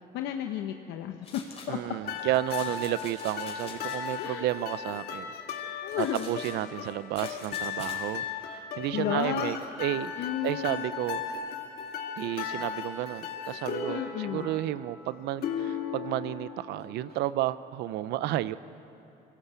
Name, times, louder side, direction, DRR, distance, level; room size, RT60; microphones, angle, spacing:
voice 1, 0.1-1.4 1.7-1.8 4.2-4.5 5.8-6.3 8.9-9.6 10.2-10.8 13.9-14.6, left 10 dB, 90° left, 5 dB, 1.0 m, -32 dB
sound 1, 1.2-1.7 2.3-4.2 5.9-8.0, left 4 dB, 35° left, 4.7 m, -46 dB
voice 2, 1.7-11.4 12.2-18.6, right 14 dB, 80° right, 16 dB, 0.7 m, -32 dB
sound 2, 2.0-17.2, left 7 dB, 65° left, 2.3 m, -37 dB
23.5 x 18.0 x 8.2 m, 2.8 s
cardioid pair, 110°, 17 cm